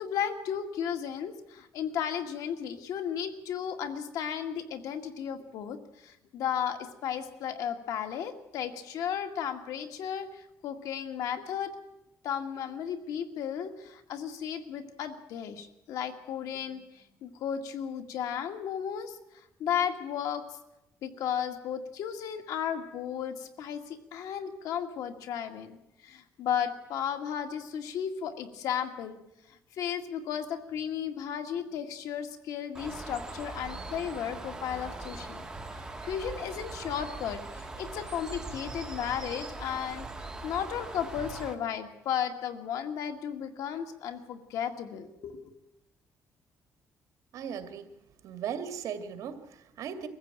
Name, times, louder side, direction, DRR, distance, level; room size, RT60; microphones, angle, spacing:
voice 1, 0.0-11.7 12.2-19.2 19.6-20.6 21.0-25.8 26.0-29.2 29.5-35.4 35.7-40.1 40.4-45.5, left 8 dB, 90° left, 7 dB, 2.0 m, -34 dB
Bird, 32.7-41.5, right 2 dB, 10° right, 2.0 m, -41 dB
voice 2, 47.3-47.9 48.2-50.1, right 8 dB, 75° right, 9 dB, 2.2 m, -37 dB
23.0 x 15.0 x 9.0 m, 0.89 s
cardioid pair, 140°, 6 cm